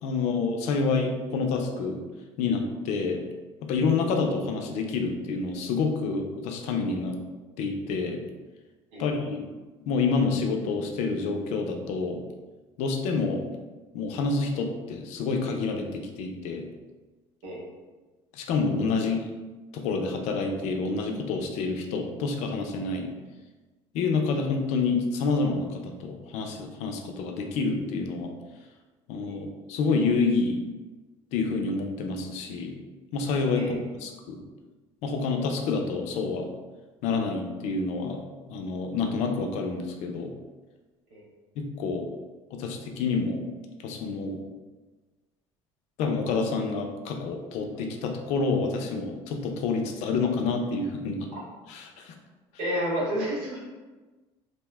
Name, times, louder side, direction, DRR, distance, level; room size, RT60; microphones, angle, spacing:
voice 1, 0.0-2.0 2.4-3.2 3.6-7.2 7.6-8.2 9.0-9.4 9.9-12.2 12.8-13.4 13.9-16.6 18.3-19.3 19.7-23.1 23.9-28.3 29.1-30.6 31.3-32.8 33.1-34.4 35.0-36.5 37.0-40.3 41.6-42.1 42.5-43.4 43.8-44.4 46.0-51.3 51.7-52.1, left 4 dB, 75° left, 3 dB, 0.4 m, -28 dB
voice 2, 52.6-53.6, equal, 90° right, -4 dB, 1.0 m, -30 dB
2.6 x 2.1 x 3.2 m, 1.3 s
cardioid pair, 110°, 12 cm